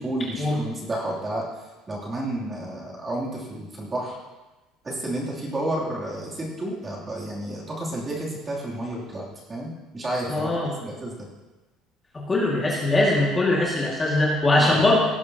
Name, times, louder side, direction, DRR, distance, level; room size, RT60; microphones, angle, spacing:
voice 1, 0.0-1.5 1.9-4.2 4.8-11.3 14.5-14.9, right 1 dB, 20° right, -4 dB, 2.8 m, -31 dB
voice 2, 10.3-10.7 12.3-15.0, left 2 dB, 15° left, -4 dB, 2.0 m, -21 dB
18.0 x 11.0 x 2.8 m, 1.1 s
cardioid pair, 160°, 0 cm